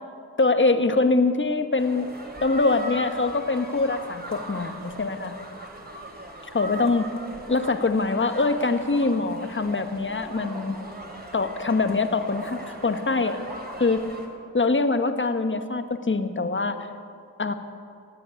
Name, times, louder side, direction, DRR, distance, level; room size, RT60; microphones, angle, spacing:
voice 1, 0.4-2.1 2.4-5.4 6.5-7.1 7.5-10.8 11.3-13.5 13.8-14.0 14.5-16.9 17.4-17.5, left 3 dB, 30° left, 8 dB, 1.3 m, -24 dB
sound 1, 1.8-14.3, right 1 dB, 25° right, 3.4 m, -39 dB
17.5 x 9.3 x 8.4 m, 2.4 s
cardioid pair, 50°, 38 cm